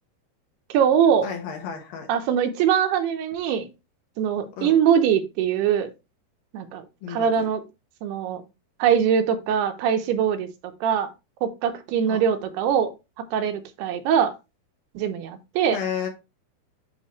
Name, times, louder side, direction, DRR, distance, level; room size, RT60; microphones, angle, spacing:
voice 1, 0.7-1.3 2.1-3.7 4.2-5.9 6.5-6.8 7.1-7.7 8.0-8.4 8.8-10.5 10.8-11.1 11.4-12.9 13.3-14.3 14.9-15.8, right 8 dB, 90° right, 7 dB, 2.9 m, -22 dB
voice 2, 1.2-2.1 4.6-4.8 7.0-7.5 12.1-12.2 15.7-16.1, left 7 dB, 65° left, 3 dB, 2.8 m, -32 dB
11.0 x 3.7 x 3.1 m, 0.26 s
omnidirectional pair, 4.6 m